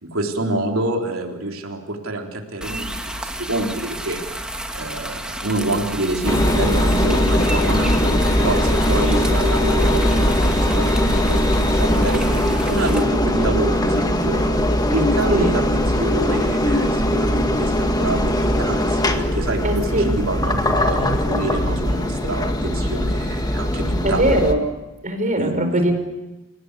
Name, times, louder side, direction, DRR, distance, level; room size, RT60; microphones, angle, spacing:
voice 1, 0.0-4.5 4.7-14.4 14.9-24.3 25.4-25.8, right 2 dB, 75° right, 2 dB, 3.8 m, -27 dB
sound 1, 2.6-13.0, right 1 dB, 5° right, 1.8 m, -31 dB
Engine, 6.3-24.5, left 1 dB, 20° left, 1.8 m, -20 dB
voice 2, 19.6-20.0 20.7-20.9 21.2-21.3 24.0-24.6 25.0-26.0, right 1 dB, 40° right, 7 dB, 4.6 m, -21 dB
29.5 x 17.5 x 8.4 m, 1.1 s
head